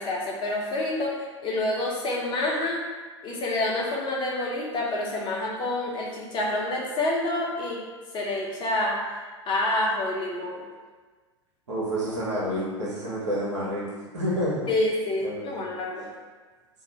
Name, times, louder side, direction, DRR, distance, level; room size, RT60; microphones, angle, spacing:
voice 1, 0.0-2.8 3.2-7.8 8.1-10.6 14.7-16.1, left 1 dB, 30° left, -4 dB, 0.9 m, -28 dB
voice 2, 11.7-13.8 14.1-14.6 15.2-15.6, equal, 75° right, -6 dB, 1.1 m, -29 dB
2.7 x 2.4 x 4.1 m, 1.4 s
figure-of-eight pair, 90°, 15 cm